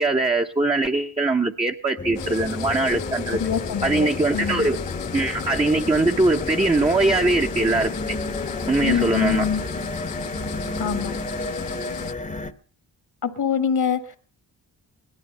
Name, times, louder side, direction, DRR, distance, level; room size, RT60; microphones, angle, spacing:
voice 1, 0.0-3.4 3.8-4.8 5.1-8.2 8.7-9.4, right 2 dB, 15° right, 3 dB, 0.7 m, -21 dB
sound 1, 2.0-12.5, left 2 dB, 15° left, 0.8 m, -31 dB
sound 2, 2.2-12.1, left 11 dB, 80° left, 0.7 m, -37 dB
voice 2, 3.3-4.7 8.8-9.6 10.8-11.1 13.2-14.2, left 7 dB, 60° left, 10 dB, 1.5 m, -25 dB
18.0 x 12.0 x 5.5 m, 0.43 s
cardioid pair, 80°, 42 cm